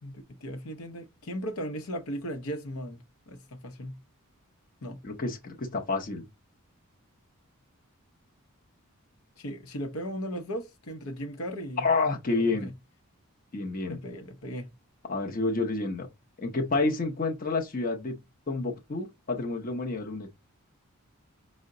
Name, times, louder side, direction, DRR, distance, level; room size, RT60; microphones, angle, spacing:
voice 1, 0.0-4.0 4.8-5.0 9.4-11.9 12.3-12.7 13.9-14.7, equal, 75° left, 0.8 m, -37 dB
voice 2, 5.0-6.3 11.8-12.7 13.5-14.0 15.1-16.1 16.4-18.2 18.5-20.3, left 3 dB, 40° left, 0.7 m, -29 dB
5.6 x 2.1 x 3.7 m
head